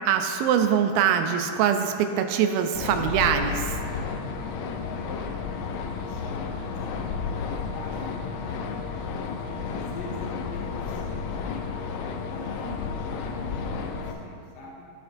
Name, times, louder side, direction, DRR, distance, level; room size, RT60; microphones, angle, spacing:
voice 1, 0.1-3.8, right 8 dB, 80° right, 7 dB, 2.2 m, -23 dB
sound 1, 2.8-14.1, left 5 dB, 85° left, 1.8 m, -32 dB
voice 2, 4.8-5.3 5.9-8.8 9.3-11.6 12.3-12.9 13.3-14.9, left 3 dB, 70° left, -4 dB, 2.2 m, -43 dB
12.5 x 9.6 x 2.6 m, 2.3 s
omnidirectional pair, 4.4 m